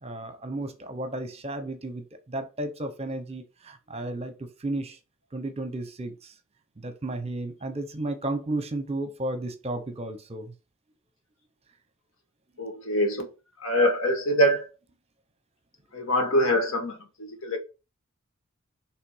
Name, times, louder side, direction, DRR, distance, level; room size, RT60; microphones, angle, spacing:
voice 1, 0.0-5.0 5.3-6.3 6.8-10.5, right 2 dB, 30° right, 0.8 m, -33 dB
voice 2, 12.6-13.3 13.6-14.7 15.9-17.6, equal, 70° left, 1.6 m, -24 dB
5.7 x 3.3 x 5.5 m
head